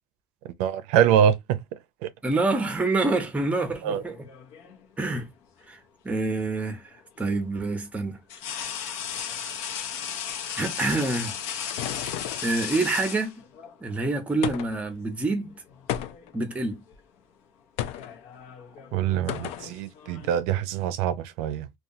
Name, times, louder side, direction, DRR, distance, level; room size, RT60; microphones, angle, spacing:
voice 1, 0.6-1.6 2.0-2.1 3.8-4.0 18.9-21.7, right 9 dB, 80° right, 0.4 m, -24 dB
voice 2, 2.2-4.2 5.0-5.3 5.7-5.8 6.0-6.9 7.2-8.2 10.6-11.3 12.4-13.3 13.8-15.6 16.3-16.8, right 3 dB, 10° right, 0.6 m, -26 dB
sound 1, 4.0-4.9 6.6-6.8 8.3-13.8 15.0-15.2 15.6-16.3 16.6-17.0 17.8-20.4, left 8 dB, 80° left, 0.8 m, -36 dB
sound 2, 11.0-12.5 14.4-14.9 15.9-16.4 17.8-18.2 19.3-19.7, left 11 dB, 60° left, 0.4 m, -33 dB
2.8 x 2.3 x 2.6 m
cardioid pair, 160°, 12 cm